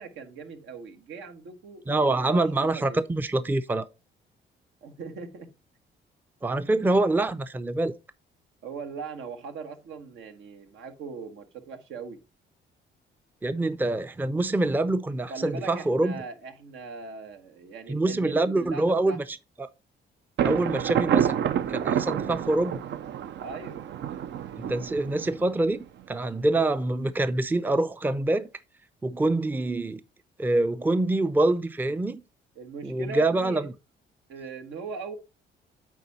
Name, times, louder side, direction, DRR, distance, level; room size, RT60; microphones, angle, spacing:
voice 1, 0.0-2.4 2.7-3.0 4.8-5.5 6.6-6.7 8.6-12.2 15.3-19.2 23.4-23.8 26.5-26.6 32.5-33.7 34.3-35.2, right 4 dB, 80° right, 1.3 m, -40 dB
voice 2, 1.9-3.9 6.4-7.9 13.4-16.1 17.9-19.2 19.6-19.7 20.4-21.4 21.7-22.8 24.6-28.5 29.0-30.0 30.4-32.2 32.8-33.7, right 2 dB, 10° right, 0.5 m, -25 dB
Thunder, 20.4-26.0, right 9 dB, 65° right, 0.6 m, -28 dB
9.1 x 3.7 x 4.1 m
cardioid pair, 90°, 20 cm